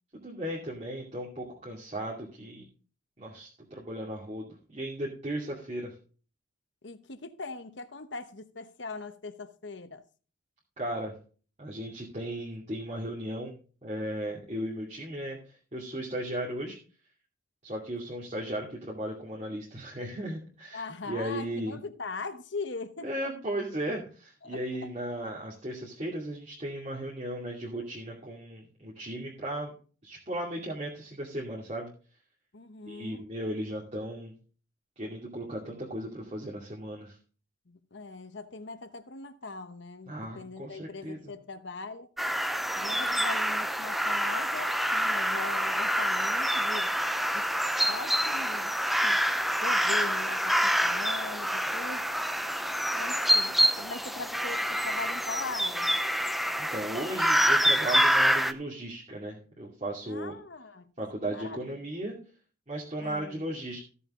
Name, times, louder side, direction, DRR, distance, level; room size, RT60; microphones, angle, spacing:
voice 1, 0.1-2.6 3.2-5.9 10.8-11.1 11.6-16.8 17.6-21.8 23.0-29.7 30.0-31.9 32.9-34.3 35.0-37.2 40.1-41.3 56.6-60.3 61.0-62.2 62.7-63.8, right 1 dB, 35° right, 2.4 m, -36 dB
voice 2, 6.8-10.0 20.7-23.3 24.4-24.9 26.0-26.1 32.5-33.2 37.7-42.1 42.8-47.0 47.3-47.4 47.9-48.7 49.0-49.2 49.6-52.1 52.9-56.0 60.0-60.9 61.3-61.6 62.1-62.2 63.0-63.4, left 3 dB, 60° left, 1.0 m, -41 dB
sound 1, 42.2-58.5, equal, ahead, 0.5 m, -27 dB
15.0 x 7.0 x 3.7 m
head